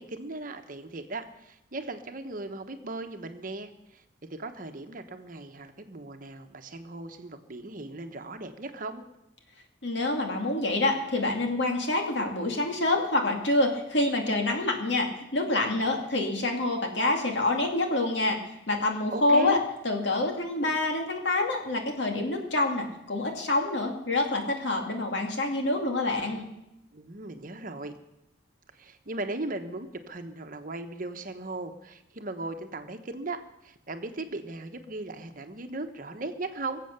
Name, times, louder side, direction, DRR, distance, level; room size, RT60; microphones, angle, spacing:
voice 1, 0.0-4.0 4.3-9.0 19.1-19.6 26.9-28.0 28.7-36.8, right 2 dB, 45° right, 7 dB, 1.0 m, -37 dB
voice 2, 9.8-18.4 18.7-19.6 19.8-26.4, left 2 dB, 70° left, 2 dB, 2.4 m, -27 dB
22.5 x 7.7 x 6.7 m, 0.89 s
head